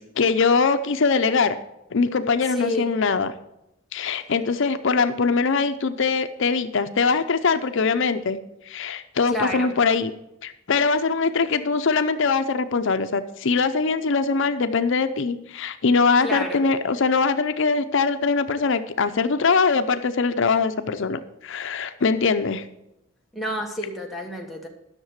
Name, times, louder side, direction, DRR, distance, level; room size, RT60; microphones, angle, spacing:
voice 1, 0.0-1.6 1.9-3.3 3.9-8.4 8.7-10.1 10.4-22.6, left 4 dB, 65° left, 9 dB, 0.6 m, -22 dB
voice 2, 2.5-2.9 9.3-9.7 16.2-16.6 23.3-24.7, left 1 dB, ahead, 1 dB, 1.4 m, -29 dB
11.0 x 6.6 x 6.5 m, 0.88 s
head